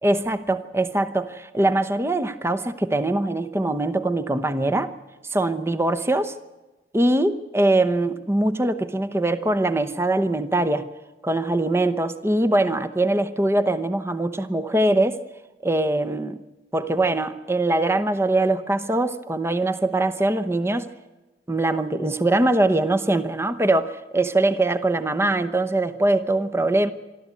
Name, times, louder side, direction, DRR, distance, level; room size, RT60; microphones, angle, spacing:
voice 1, 0.0-4.9 5.3-6.3 6.9-10.9 11.2-15.2 15.6-16.4 16.7-20.9 21.5-26.9, right 2 dB, 15° right, 0.8 m, -22 dB
26.0 x 12.5 x 8.4 m
head